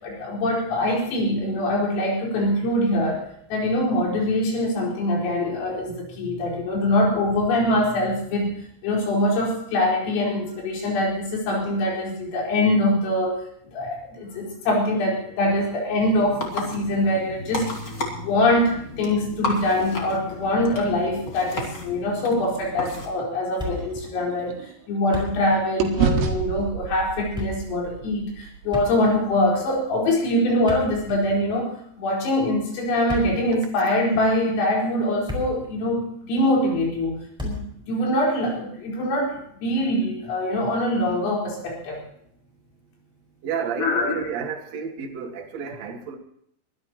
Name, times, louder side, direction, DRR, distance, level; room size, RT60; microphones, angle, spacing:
voice 1, 0.0-3.2 3.5-8.6 8.8-13.4 13.7-17.7 18.1-24.5 24.9-31.7 32.0-42.0 43.8-44.3, left 1 dB, 80° left, -2 dB, 7.2 m, -23 dB
sound 1, 16.0-23.1, left 2 dB, 30° left, 2.1 m, -33 dB
sound 2, 23.1-25.4 25.8-30.0, right 6 dB, 80° right, 4.3 m, -30 dB
Thump thud, 23.6-24.1 24.4-24.5 24.9-25.7 25.9-26.1 27.1-27.7 28.7-29.3 30.5-31.5 32.9-33.5 34.3-34.4 35.0-35.7 36.0-36.1 37.4-37.8, left 1 dB, ahead, 4.4 m, -33 dB
voice 2, 43.4-46.2, right 6 dB, 60° right, 3 dB, 1.8 m, -31 dB
23.5 x 13.5 x 3.0 m, 0.70 s
omnidirectional pair, 5.9 m